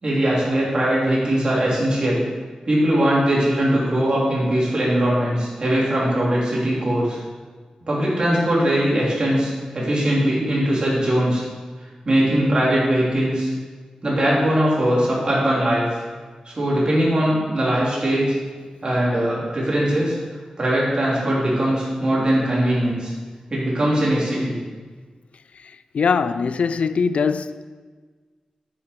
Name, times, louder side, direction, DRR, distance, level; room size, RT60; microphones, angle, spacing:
voice 1, 0.0-2.2 2.6-7.2 7.9-11.4 12.0-13.5 14.0-16.0 16.4-18.3 18.8-20.1 20.6-23.1 23.5-24.5, right 1 dB, 40° right, 3.4 m, -20 dB
voice 2, 25.9-27.6, left 5 dB, 75° left, 0.3 m, -21 dB
9.0 x 6.9 x 5.2 m
wide cardioid pair, 125°, 2 cm